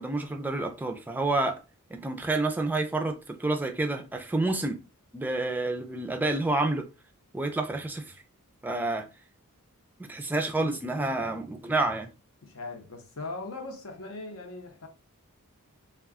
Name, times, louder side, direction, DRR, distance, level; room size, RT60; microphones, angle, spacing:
voice 1, 0.0-1.6 1.9-4.8 5.1-6.9 7.3-8.1 8.6-9.1 10.0-12.1, right 2 dB, 10° right, 0.3 m, -29 dB
voice 2, 12.4-14.9, left 3 dB, 65° left, 0.7 m, -39 dB
2.3 x 2.2 x 3.5 m
head